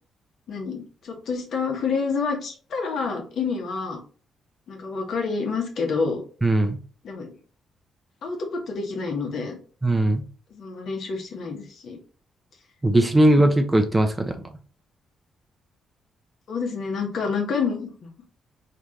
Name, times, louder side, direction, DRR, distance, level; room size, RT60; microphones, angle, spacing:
voice 1, 0.5-4.0 4.7-6.2 7.0-7.3 8.2-9.6 10.5-12.0 13.3-13.4 16.5-17.9, left 5 dB, 60° left, 1 dB, 1.4 m, -28 dB
voice 2, 6.4-6.8 9.8-10.2 12.8-14.3, right 1 dB, 20° right, 5 dB, 0.9 m, -19 dB
4.7 x 3.3 x 2.8 m, 0.39 s
hypercardioid pair, 40°, 0 cm